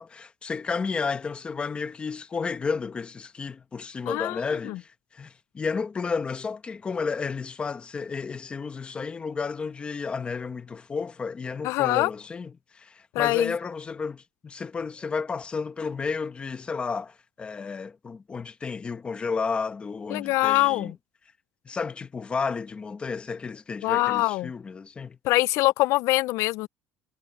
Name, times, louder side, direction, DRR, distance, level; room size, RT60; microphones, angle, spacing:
voice 1, 0.0-20.9 21.6-25.2, left 5 dB, 20° left, 1.4 m, -32 dB
voice 2, 4.1-4.4 4.6-4.8 11.6-12.1 13.1-13.5 20.1-21.0 23.8-24.5 25.2-26.7, left 19 dB, 65° left, 0.4 m, -23 dB
cardioid pair, 155°, 5 cm